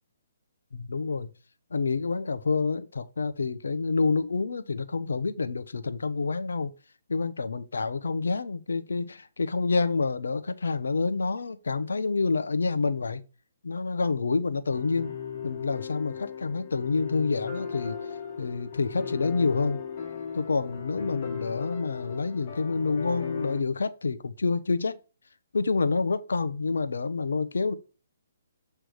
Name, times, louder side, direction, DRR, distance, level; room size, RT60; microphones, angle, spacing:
voice 1, 0.7-1.3 1.7-6.7 7.1-13.2 13.6-15.1 15.4-18.0 18.4-19.8 20.3-25.0 25.5-27.7, left 4 dB, 75° left, 0.8 m, -28 dB
sound 1, 14.7-23.6, left 7 dB, 40° left, 1.6 m, -37 dB
7.7 x 3.4 x 4.8 m
hypercardioid pair, 140°, 0 cm